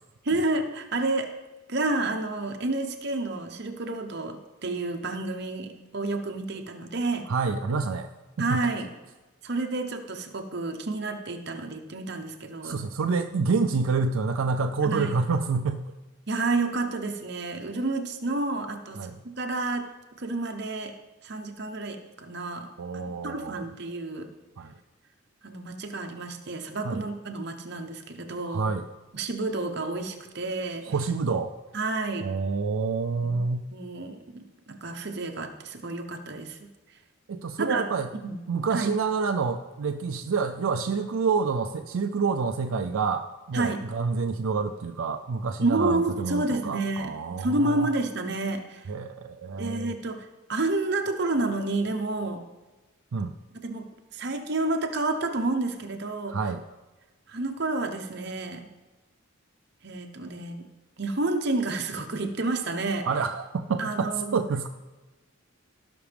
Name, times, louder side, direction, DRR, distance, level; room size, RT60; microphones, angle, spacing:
voice 1, 0.2-1.3 1.7-7.3 8.4-8.9 9.4-12.8 14.8-15.2 16.3-19.9 20.2-20.9 21.2-24.3 25.4-28.6 29.1-30.8 31.7-32.3 33.2-33.4 33.7-36.7 37.6-37.8 38.2-38.4 38.7-38.9 43.5-43.8 45.6-47.1 47.4-48.9 49.6-52.4 53.6-56.4 57.3-58.7 59.8-60.7 61.0-63.1 63.8-64.4, right 2 dB, 55° right, 4 dB, 0.9 m, -30 dB
voice 2, 7.3-8.1 8.4-8.6 12.6-15.9 19.0-19.2 22.8-23.6 24.6-24.7 26.8-27.1 28.5-28.9 30.9-31.5 32.2-33.7 37.3-38.1 38.5-47.9 48.9-49.9 53.1-53.3 56.3-56.6 63.0-64.7, right 4 dB, 85° right, 6 dB, 0.4 m, -28 dB
16.5 x 6.0 x 3.5 m, 1.1 s
head